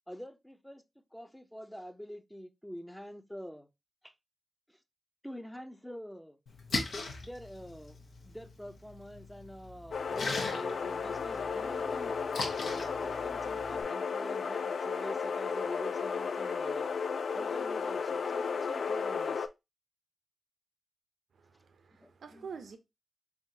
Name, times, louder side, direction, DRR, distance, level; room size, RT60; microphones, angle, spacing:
voice 1, 0.1-0.8 1.1-3.7 4.0-4.1 4.7-4.8 5.2-6.4 7.2-8.0 8.2-12.3 12.6-16.9 17.3-19.5 22.0-22.5, equal, 5° left, 0.5 m, -46 dB
Splash splatter, 6.5-13.8, left 3 dB, 90° left, 1.0 m, -40 dB
sound 1, 9.9-19.5, left 5 dB, 70° left, 0.3 m, -34 dB
voice 2, 21.4-22.8, right 6 dB, 85° right, 0.6 m, -47 dB
3.9 x 3.5 x 2.7 m
cardioid pair, 80°, 0 cm